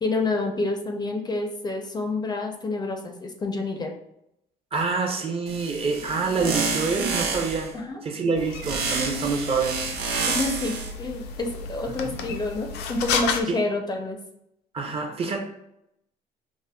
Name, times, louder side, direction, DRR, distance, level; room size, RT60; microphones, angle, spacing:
voice 1, 0.0-3.9 7.7-8.0 10.3-14.2, left 2 dB, 25° left, 3 dB, 0.4 m, -28 dB
voice 2, 4.7-7.7 8.0-9.9 12.0-12.2 13.5-13.6 14.7-15.4, right 4 dB, 35° right, 3 dB, 0.5 m, -26 dB
sound 1, 5.5-7.7 8.6-10.9, right 4 dB, 70° right, 0.7 m, -29 dB
sound 2, 8.4-13.4, left 5 dB, 80° left, 0.4 m, -32 dB
4.9 x 2.1 x 2.2 m, 0.80 s
cardioid pair, 110°, 17 cm